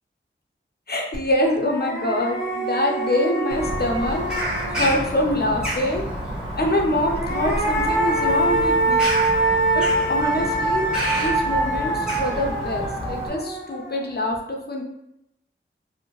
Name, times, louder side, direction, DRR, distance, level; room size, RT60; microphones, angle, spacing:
voice 1, 0.9-4.2 4.7-6.0 6.6-9.1 9.7-10.9 11.1-14.8, left 1 dB, 50° left, 1 dB, 0.5 m, -25 dB
sound 1, 1.1-1.2 1.6-5.3 6.9-14.2, right 2 dB, 70° right, 1.0 m, -24 dB
Bird vocalization bird call bird song, 3.5-13.3, equal, 5° right, 0.9 m, -29 dB
2.6 x 2.1 x 2.9 m, 0.81 s
wide cardioid pair, 45°, 21 cm